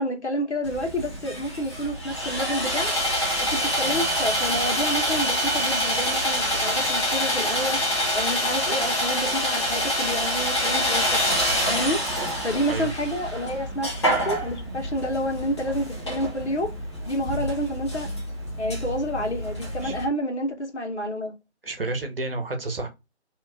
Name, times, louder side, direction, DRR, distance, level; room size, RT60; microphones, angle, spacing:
voice 1, 0.0-2.9 3.4-11.2 11.7-12.0 12.4-16.7 17.0-18.1 18.6-21.3, equal, 70° left, 1.3 m, -29 dB
Sawing, 0.6-20.0, equal, 25° left, 1.0 m, -26 dB
voice 2, 21.6-22.9, right 2 dB, 55° right, 1.0 m, -30 dB
2.9 x 2.5 x 3.3 m
figure-of-eight pair, 160°, 35 cm